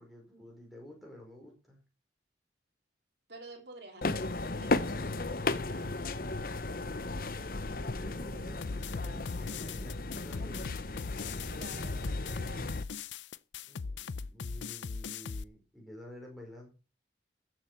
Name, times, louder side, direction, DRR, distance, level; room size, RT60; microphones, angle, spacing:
voice 1, 0.0-1.8 6.6-10.7 13.7-16.7, left 1 dB, ahead, 5.1 m, -51 dB
voice 2, 3.3-5.9 11.5-12.7, right 2 dB, 65° right, 3.6 m, -50 dB
sound 1, 4.0-12.8, left 2 dB, 55° left, 0.9 m, -35 dB
sound 2, 8.6-15.4, left 5 dB, 90° left, 0.6 m, -39 dB
14.5 x 7.8 x 5.6 m
head